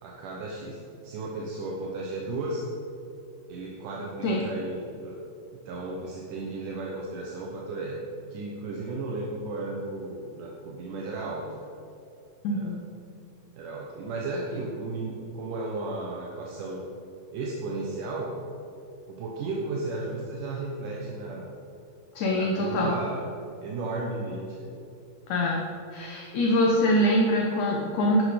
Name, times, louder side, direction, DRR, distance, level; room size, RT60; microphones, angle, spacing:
voice 1, 0.0-2.6 3.5-5.2 5.6-11.7 12.5-12.8 13.6-16.9 17.3-18.3 19.1-21.5 22.3-23.3 23.6-24.8, right 2 dB, 75° right, -2 dB, 2.7 m, -34 dB
voice 2, 12.4-12.8 22.2-22.9 25.3-25.6 25.9-28.2, equal, 65° left, -1 dB, 2.4 m, -24 dB
11.5 x 11.0 x 5.1 m, 2.7 s
omnidirectional pair, 3.8 m